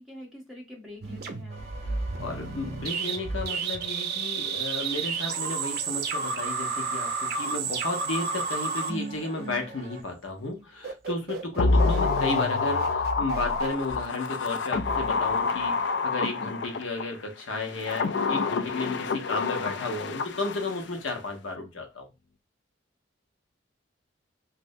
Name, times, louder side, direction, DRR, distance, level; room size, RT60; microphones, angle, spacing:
voice 1, 0.0-1.6, left 1 dB, ahead, 1.0 m, -45 dB
sound 1, 1.0-9.8 10.4-10.5 10.8-14.7, right 4 dB, 50° right, 0.6 m, -32 dB
sound 2, 1.5-10.0, right 1 dB, 35° right, 0.9 m, -47 dB
voice 2, 1.9-22.1, left 2 dB, 85° left, 0.9 m, -33 dB
sound 3, 11.6-17.0 17.7-20.9 21.2-21.3, left 4 dB, 65° left, 0.4 m, -27 dB
3.2 x 2.6 x 2.6 m
head